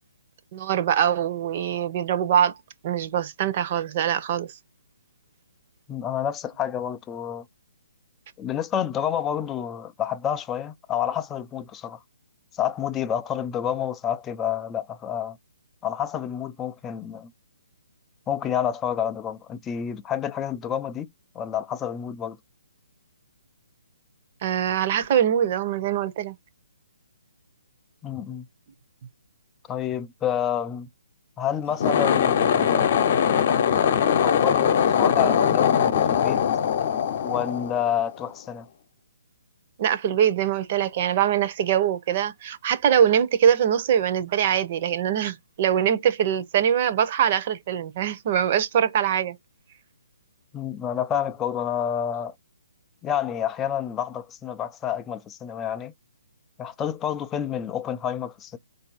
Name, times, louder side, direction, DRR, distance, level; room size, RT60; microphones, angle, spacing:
voice 1, 0.5-2.5 2.8-4.5 24.4-26.3 39.8-49.4, right 9 dB, 40° right, 0.8 m, -23 dB
voice 2, 5.9-7.4 8.4-12.0 12.5-15.4 15.8-17.3 18.3-21.1 21.3-22.4 28.0-28.5 29.7-30.9 31.4-33.2 34.2-36.4 37.2-38.7 50.5-52.3 53.0-55.9 56.6-58.6, left 9 dB, 15° left, 0.4 m, -29 dB
sound 1, 31.7-38.2, left 8 dB, 45° left, 0.9 m, -21 dB
4.1 x 2.7 x 4.2 m
hypercardioid pair, 145°, 0 cm